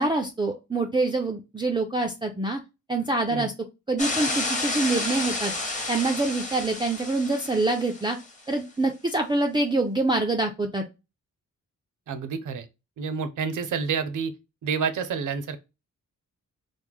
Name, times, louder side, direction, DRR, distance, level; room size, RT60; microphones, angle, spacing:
voice 1, 0.0-2.6 2.9-3.5 3.9-5.5 5.9-8.2 8.5-10.8, right 2 dB, 15° right, 0.4 m, -25 dB
sound 1, 4.0-8.2, left 2 dB, 25° left, 0.8 m, -31 dB
voice 2, 12.1-12.7 13.0-14.3 14.6-15.6, right 6 dB, 70° right, 0.6 m, -29 dB
3.1 x 2.1 x 3.5 m
wide cardioid pair, 125°, 32 cm